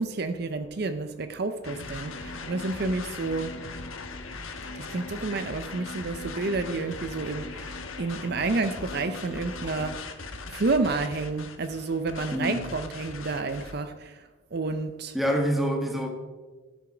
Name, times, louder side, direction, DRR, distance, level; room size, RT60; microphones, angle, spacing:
voice 1, 0.0-3.6 4.7-10.0 10.5-14.2 14.5-15.2, right 3 dB, 50° right, 9 dB, 0.6 m, -30 dB
sound 1, 1.6-13.7, left 3 dB, 90° left, 1.2 m, -39 dB
voice 2, 12.3-12.6 15.1-16.1, equal, ahead, 2 dB, 1.4 m, -26 dB
13.0 x 7.3 x 4.9 m, 1.3 s
head